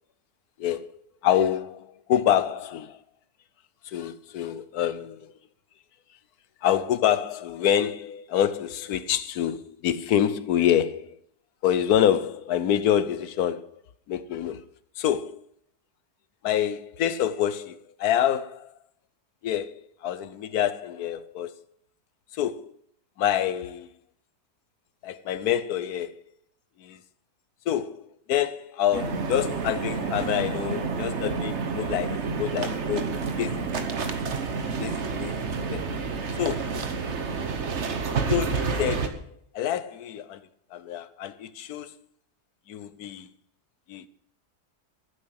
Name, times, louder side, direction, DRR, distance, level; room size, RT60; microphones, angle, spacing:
voice 1, 1.2-3.0 3.8-5.3 6.6-11.2 11.6-13.7 14.1-14.6 15.0-15.4 16.4-18.7 19.4-21.6 22.3-22.7 23.2-23.9 25.0-26.2 26.8-27.0 27.7-33.1 33.4-33.7 34.8-35.3 35.7-35.8 36.4-36.8 38.3-40.4 40.7-41.9 42.7-43.3 43.9-44.1, left 10 dB, 75° left, 1.2 m, -27 dB
sound 1, 28.9-39.1, right 4 dB, 45° right, 1.3 m, -29 dB
12.5 x 9.6 x 6.4 m
omnidirectional pair, 1.7 m